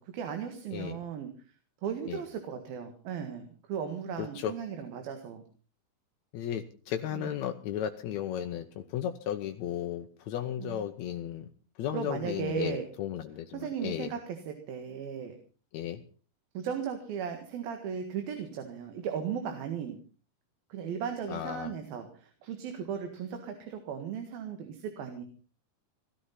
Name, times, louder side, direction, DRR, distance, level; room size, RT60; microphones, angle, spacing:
voice 1, 0.0-1.6 1.8-5.4 7.1-7.3 10.6-10.8 11.9-12.8 13.5-15.4 16.6-20.0 20.7-25.2, right 7 dB, 75° right, 6 dB, 3.6 m, -36 dB
voice 2, 4.2-4.5 6.3-11.5 11.7-14.1 15.7-16.0 21.3-21.7, left 10 dB, 75° left, 6 dB, 1.7 m, -35 dB
17.5 x 13.0 x 5.7 m, 0.39 s
omnidirectional pair, 4.4 m